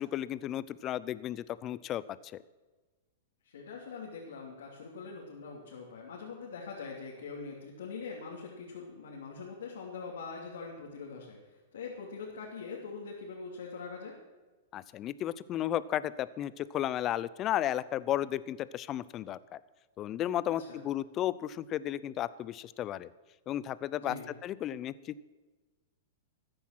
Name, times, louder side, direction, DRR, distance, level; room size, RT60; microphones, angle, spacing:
voice 1, 0.0-2.0 14.7-19.6 20.0-23.1 23.5-24.2 24.4-25.2, left 12 dB, 35° left, 18 dB, 0.5 m, -34 dB
voice 2, 3.4-14.2 20.5-20.8 24.0-24.3, left 4 dB, 80° left, -3 dB, 2.9 m, -43 dB
14.5 x 10.0 x 6.0 m, 1.3 s
hypercardioid pair, 120°, 0 cm